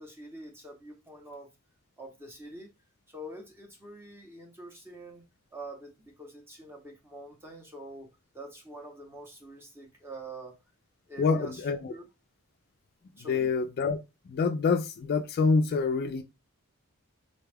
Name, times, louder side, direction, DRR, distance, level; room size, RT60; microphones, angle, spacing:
voice 1, 0.0-1.5 2.0-2.7 3.1-5.2 5.5-8.1 8.3-10.6 11.1-12.1 13.2-13.5, right 1 dB, 10° right, 0.7 m, -45 dB
voice 2, 11.2-11.9 13.3-14.0 14.3-16.2, left 4 dB, 45° left, 0.3 m, -26 dB
4.1 x 2.3 x 3.3 m
head